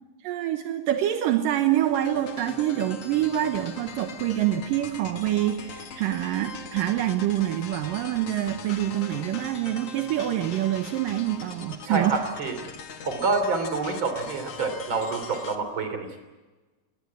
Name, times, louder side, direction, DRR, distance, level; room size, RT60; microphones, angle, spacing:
voice 1, 0.2-12.2, right 12 dB, 75° right, 7 dB, 2.7 m, -26 dB
sound 1, 1.8-15.5, left 6 dB, 50° left, 2.3 m, -41 dB
voice 2, 11.9-12.6 13.0-16.2, right 3 dB, 35° right, 7 dB, 3.8 m, -27 dB
20.0 x 20.0 x 9.7 m, 1.2 s
omnidirectional pair, 4.0 m